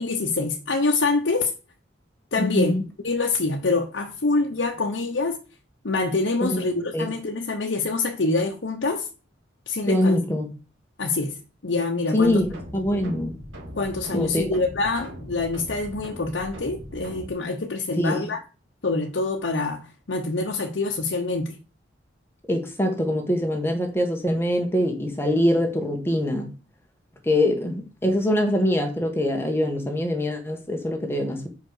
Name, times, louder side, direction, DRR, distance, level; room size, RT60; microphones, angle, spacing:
voice 1, 0.0-1.5 2.3-2.7 3.0-5.4 5.8-9.1 9.7-10.2 11.0-11.4 11.6-12.3 13.8-18.4 18.8-21.6, left 3 dB, 75° left, 0.9 m, -25 dB
voice 2, 2.4-2.8 6.4-6.6 6.9-7.1 9.9-10.5 12.1-13.4 14.1-14.5 18.0-18.2 22.5-26.5 27.2-31.5, left 1 dB, 10° left, 1.4 m, -23 dB
sound 1, 12.2-17.3, equal, 90° right, 2.3 m, -40 dB
5.3 x 4.9 x 6.4 m
head